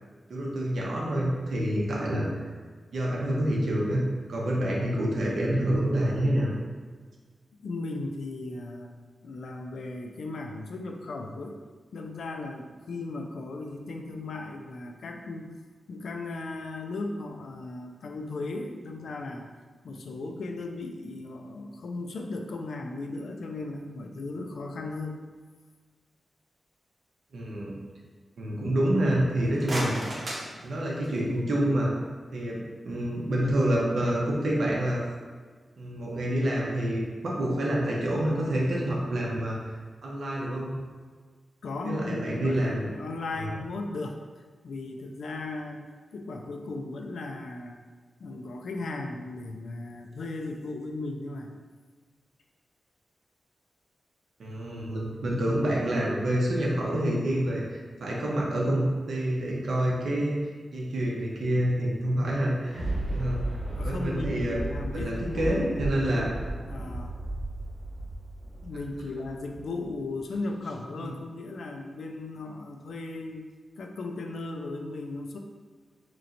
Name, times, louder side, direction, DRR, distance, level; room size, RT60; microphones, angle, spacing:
voice 1, 0.3-2.5 2.9-4.0 4.3-6.5 27.3-27.7 28.4-30.0 30.6-31.9 32.3-35.0 35.8-39.6 40.0-40.8 41.8-42.9 43.3-43.5 54.4-63.4 63.8-64.6 64.9-66.3, right 1 dB, 65° right, -3 dB, 0.7 m, -27 dB
voice 2, 7.6-8.9 9.2-11.6 11.9-15.5 15.9-19.5 19.8-25.2 41.6-44.2 44.6-45.9 46.1-47.8 48.2-51.5 63.8-65.5 66.1-67.2 68.6-73.5 73.8-75.4, left 2 dB, 75° left, 3 dB, 0.4 m, -36 dB
Can drop foley, 29.3-31.4, right 1 dB, 40° right, 0.8 m, -35 dB
Thunder, 62.6-69.8 70.3-70.4, right 1 dB, 5° left, 1.3 m, -34 dB
4.1 x 3.0 x 2.5 m, 1.5 s
wide cardioid pair, 170°, 0 cm